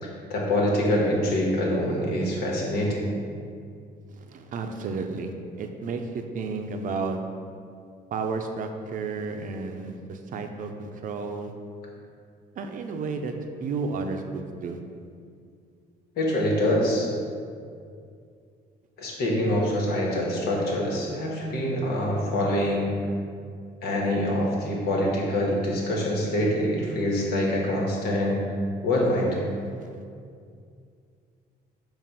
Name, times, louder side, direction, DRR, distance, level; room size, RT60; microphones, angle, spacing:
voice 1, 0.0-3.1 16.1-17.1 19.0-22.9 23.8-28.4 28.8-29.4, left 1 dB, 70° left, -2 dB, 1.5 m, -25 dB
voice 2, 4.1-5.3 5.6-7.2 8.1-11.5 12.6-13.3 13.6-14.8 29.8-29.9, right 4 dB, 50° right, 5 dB, 0.6 m, -32 dB
7.4 x 2.6 x 5.7 m, 2.3 s
cardioid pair, 110°, 17 cm